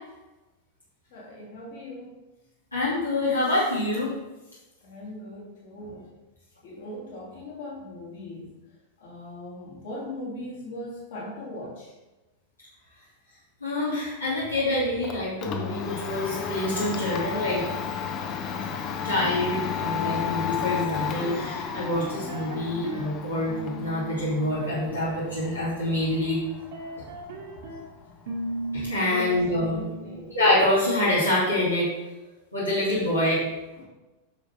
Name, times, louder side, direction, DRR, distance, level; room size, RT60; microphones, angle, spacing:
voice 1, 1.1-2.1 4.8-6.1 6.6-8.6 9.0-11.9 29.1-29.3 29.6-30.4 33.8-33.9, left 1 dB, 55° left, -5 dB, 2.8 m, -39 dB
voice 2, 2.7-4.1 13.6-17.6 19.0-26.4 28.7-29.8 30.3-31.9 32.5-33.4, left 1 dB, 85° left, -8 dB, 2.4 m, -26 dB
Domestic sounds home sounds, 14.6-30.4, left 7 dB, 35° left, 0.8 m, -34 dB
sound 1, 21.7-23.1 23.5-26.0 26.5-27.9 28.3-30.2, right 1 dB, 55° right, 1.5 m, -38 dB
8.7 x 6.0 x 3.4 m, 1.1 s
figure-of-eight pair, 90°, 0 cm